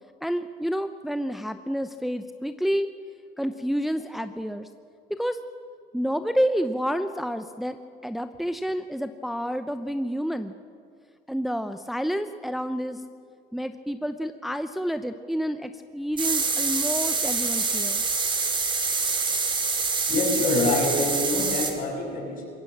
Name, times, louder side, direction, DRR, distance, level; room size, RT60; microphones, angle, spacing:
voice 1, 0.2-2.9 3.4-4.7 5.1-5.4 5.9-7.8 8.0-10.5 11.3-13.0 13.5-18.0, equal, ahead, 9 dB, 0.7 m, -29 dB
sound 1, 16.2-21.7, right 4 dB, 30° right, 2.6 m, -26 dB
voice 2, 20.1-22.5, left 2 dB, 55° left, 1 dB, 6.2 m, -25 dB
22.0 x 17.0 x 7.4 m, 2.4 s
cardioid pair, 110°, 17 cm